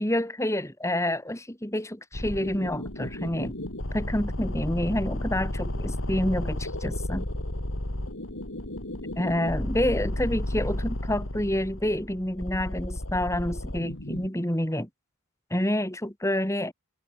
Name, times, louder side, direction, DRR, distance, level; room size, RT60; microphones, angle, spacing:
voice 1, 0.0-3.6 3.9-7.3 9.2-14.9 15.5-16.7, left 1 dB, 15° left, 2.5 m, -28 dB
sound 1, 2.1-14.3, left 1 dB, 65° left, 3.3 m, -33 dB
head